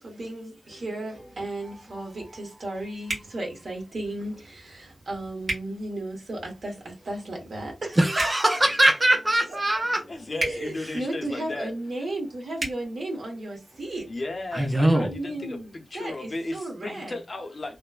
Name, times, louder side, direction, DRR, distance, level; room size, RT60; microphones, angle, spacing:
voice 1, 0.0-8.6 9.5-9.6 10.3-14.1 15.0-17.2, right 1 dB, 70° right, 1.1 m, -34 dB
sound 1, 3.1-3.3 5.4-5.6 8.1-8.4 10.4-10.6 12.6-12.8, right 1 dB, 45° right, 1.5 m, -30 dB
voice 2, 8.0-10.0 10.8-11.0 14.5-15.1, right 1 dB, 20° right, 0.4 m, -21 dB
voice 3, 10.1-11.7 14.1-17.8, left 2 dB, 45° left, 0.6 m, -35 dB
3.1 x 2.0 x 2.3 m
wide cardioid pair, 110°, 0 cm